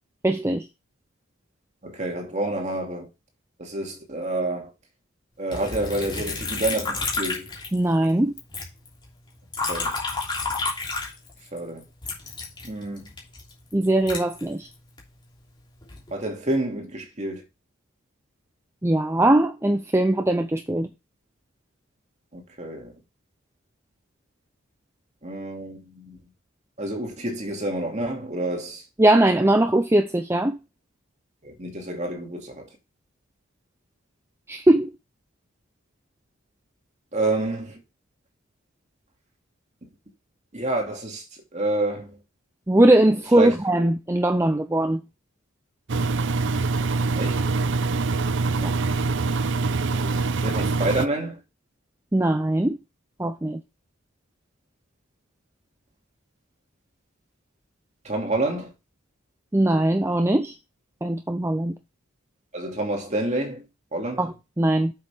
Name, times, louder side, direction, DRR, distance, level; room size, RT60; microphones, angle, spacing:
voice 1, 0.2-0.7 7.7-8.3 13.7-14.7 18.8-20.9 29.0-30.6 34.5-34.9 42.7-45.0 48.6-48.7 52.1-52.8 53.2-53.6 59.5-60.6 61.0-61.8 64.2-64.9, right 1 dB, 10° right, 0.5 m, -20 dB
voice 2, 1.8-3.1 3.6-4.7 5.4-7.5 9.7-10.0 11.5-11.8 12.6-13.1 16.1-17.4 22.3-22.9 25.2-26.2 26.8-28.8 31.4-32.7 37.1-37.8 40.5-41.3 41.5-42.2 43.3-43.6 46.8-47.5 50.0-51.4 58.0-58.7 62.5-63.6 63.9-64.3, right 2 dB, 30° right, 2.5 m, -28 dB
Liquid, 5.5-8.1 8.4-11.6 12.0-15.0 15.6-16.1, left 3 dB, 20° left, 3.2 m, -31 dB
Engine, 45.9-51.1, right 3 dB, 55° right, 0.6 m, -24 dB
7.8 x 6.9 x 3.5 m
head